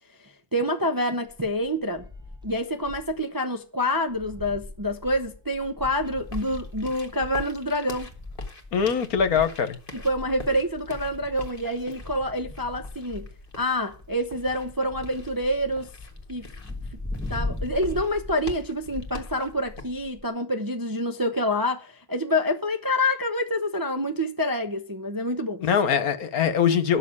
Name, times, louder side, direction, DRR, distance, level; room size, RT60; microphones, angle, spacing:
voice 1, 0.2-2.0 2.4-8.1 9.9-13.2 13.6-15.9 16.3-16.5 17.3-25.6, left 1 dB, 20° right, 0.6 m, -27 dB
sound 1, 1.3-3.2 3.6-3.7 4.0-20.2, left 2 dB, 5° right, 1.2 m, -40 dB
sound 2, 6.0-19.8, left 2 dB, 35° left, 1.7 m, -43 dB
voice 2, 8.7-9.8 25.6-27.0, left 7 dB, 65° left, 1.5 m, -22 dB
12.5 x 6.7 x 8.5 m
omnidirectional pair, 1.7 m